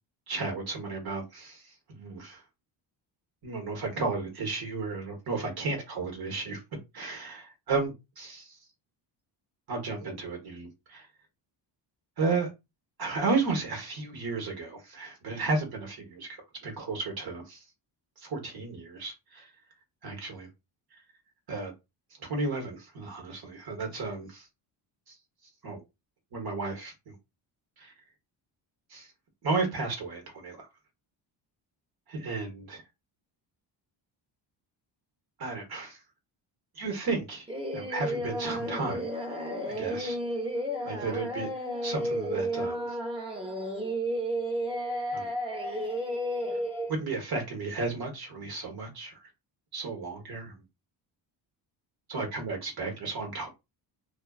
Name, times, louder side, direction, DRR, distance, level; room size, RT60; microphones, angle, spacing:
voice 1, 0.3-1.7 2.0-2.4 3.4-6.6 6.9-8.6 9.7-11.1 12.2-12.5 13.0-17.6 18.2-19.5 20.0-20.5 21.5-21.7 22.2-24.5 25.1-25.2 25.6-25.8 26.3-27.1 27.8-27.9 28.9-29.1 29.4-30.7 32.1-32.8 35.4-36.0 36.7-37.5 37.7-39.0 39.7-40.2 40.9-41.5 41.8-42.9 45.1-45.3 46.9-49.2 49.7-50.5 52.1-53.5, right 3 dB, 50° right, 1.0 m, -33 dB
Singing, 37.5-46.9, equal, 10° right, 0.7 m, -32 dB
2.3 x 2.3 x 2.2 m
cardioid pair, 95°, 47 cm